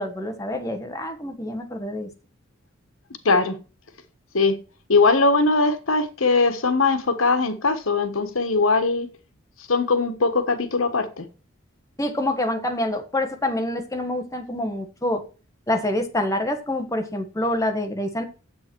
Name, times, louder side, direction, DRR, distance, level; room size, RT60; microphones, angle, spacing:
voice 1, 0.0-2.1 12.0-15.2 15.7-18.2, left 1 dB, 15° left, 1.4 m, -26 dB
voice 2, 3.2-3.6 4.3-4.6 4.9-9.1 9.7-11.3, left 3 dB, 85° left, 1.3 m, -20 dB
8.6 x 7.9 x 4.5 m
head